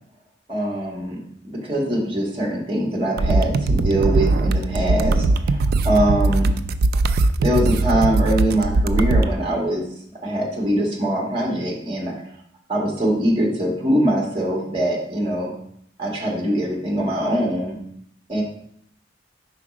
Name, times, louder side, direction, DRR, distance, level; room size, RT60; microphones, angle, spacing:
voice 1, 0.5-1.2 1.4-6.5 7.4-9.8 10.2-12.1 12.7-15.5 16.0-17.8 18.3-18.4, right 1 dB, 30° right, -2 dB, 1.5 m, -22 dB
sound 1, 3.2-9.3, right 2 dB, 55° right, 0.3 m, -20 dB
4.9 x 4.1 x 4.8 m, 0.69 s
head